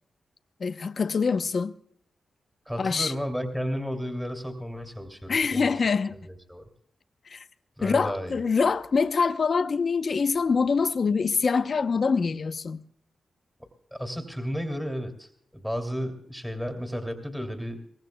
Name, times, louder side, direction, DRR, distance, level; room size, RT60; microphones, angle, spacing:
voice 1, 0.6-1.8 2.8-3.1 5.3-6.1 7.3-7.5 7.8-12.8, left 5 dB, 55° left, 0.8 m, -25 dB
voice 2, 2.7-5.7 6.2-6.7 7.8-8.4 13.9-17.9, equal, ahead, 2.7 m, -33 dB
23.5 x 18.5 x 2.3 m
cardioid pair, 75°, 0 cm